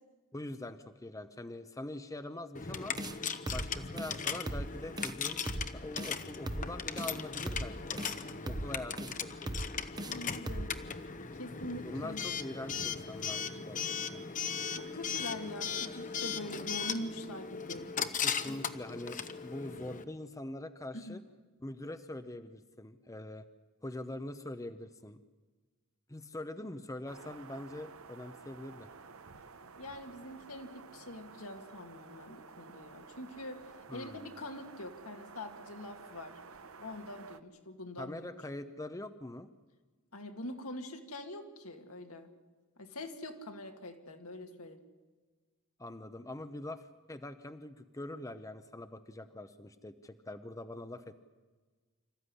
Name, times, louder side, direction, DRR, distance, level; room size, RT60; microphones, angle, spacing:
voice 1, 0.3-3.0 3.5-5.4 5.7-8.0 8.5-9.5 11.8-14.2 18.2-21.2 21.6-23.5 23.8-25.2 26.1-28.9 33.9-34.3 38.0-39.5 45.8-51.1, left 1 dB, 15° left, 10 dB, 0.8 m, -43 dB
Coin (dropping) / Alarm, 2.5-20.0, left 6 dB, 35° left, 1.0 m, -38 dB
sound 1, 3.0-3.2 3.5-3.7 4.0-4.1 4.5-4.7 5.0-5.1 5.5-5.7 6.0-6.1 6.5-6.7 7.0-7.1 7.5-7.7 8.0-8.1 8.5-8.7 9.0-9.1 9.5-9.7 10.0-10.1 10.5-10.7, right 1 dB, 20° right, 0.9 m, -37 dB
voice 2, 10.0-10.7 11.4-12.2 14.7-17.9 18.5-18.6 20.9-21.2 29.8-36.4 36.8-38.4 40.1-42.3 42.8-44.8, left 1 dB, 80° left, 4 dB, 2.5 m, -44 dB
sound 2, 27.1-37.4, right 5 dB, 70° right, 1.0 m, -52 dB
26.0 x 14.5 x 9.9 m, 1.3 s
head